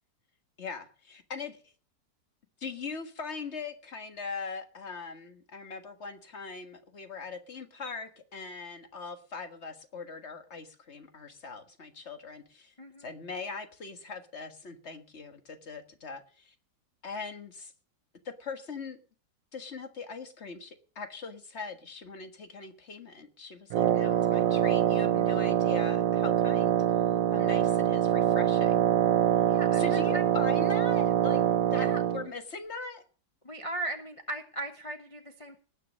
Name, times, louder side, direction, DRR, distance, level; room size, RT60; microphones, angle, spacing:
voice 1, 0.6-1.6 2.6-12.7 13.0-16.5 17.0-17.7 18.3-19.0 19.5-26.8 27.3-28.8 29.7-31.4 31.7-33.0, left 4 dB, 40° left, 7 dB, 1.8 m, -41 dB
Wind instrument woodwind instrument, 23.7-32.3, right 11 dB, 90° right, 1.5 m, -25 dB
voice 2, 24.0-24.6 29.5-30.3 31.8-32.0 33.4-35.6, right 2 dB, 20° left, 4 dB, 1.0 m, -38 dB
19.0 x 6.5 x 6.3 m, 0.39 s
omnidirectional pair, 1.9 m